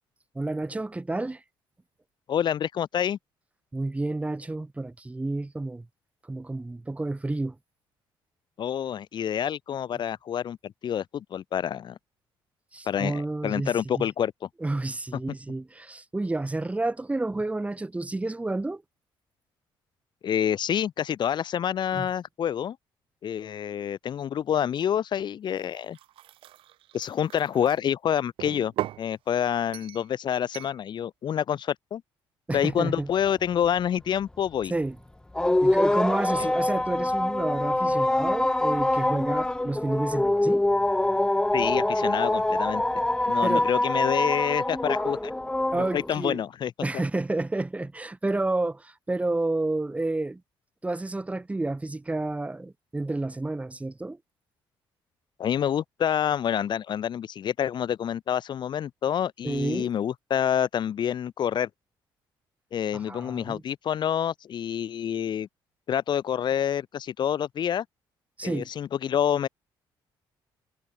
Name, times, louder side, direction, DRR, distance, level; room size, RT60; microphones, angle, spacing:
voice 1, 0.3-1.4 3.7-5.9 6.2-7.6 12.7-14.1 14.6-18.8 21.9-22.1 32.5-33.1 34.7-35.0 35.6-40.6 43.4-43.7 45.7-46.4 46.8-50.4 50.8-54.2 59.4-59.9 62.9-63.6 68.4-68.7, right 2 dB, 15° right, 2.8 m, -30 dB
voice 2, 2.3-3.2 8.6-12.0 12.9-14.3 20.2-22.8 23.2-26.0 26.9-28.7 29.0-32.0 32.5-34.7 41.5-42.8 43.3-45.3 45.7-46.7 55.4-61.7 62.7-65.5 65.9-67.8 68.4-69.5, left 9 dB, 55° left, 1.6 m, -27 dB
sound 1, 25.5-27.8 28.4-29.1 29.7-30.1 30.5-30.8, right 14 dB, 75° right, 0.9 m, -38 dB
sound 2, 35.4-46.2, left 1 dB, 10° left, 0.6 m, -25 dB
cardioid pair, 95°, 9 cm